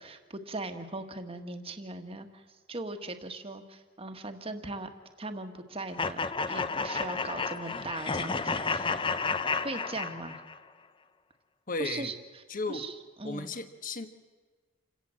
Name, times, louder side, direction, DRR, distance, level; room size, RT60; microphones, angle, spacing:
voice 1, 0.0-2.4 2.7-4.9 5.2-6.2 6.5-9.0 9.6-10.4 11.8-12.1 12.7-13.5, right 2 dB, 25° right, 7 dB, 1.5 m, -39 dB
sound 1, 6.0-10.6, left 4 dB, 25° left, 0.7 m, -31 dB
voice 2, 11.7-12.1 12.5-12.8 13.2-14.1, left 3 dB, 40° left, 9 dB, 1.4 m, -34 dB
28.0 x 17.0 x 7.7 m, 1.4 s
head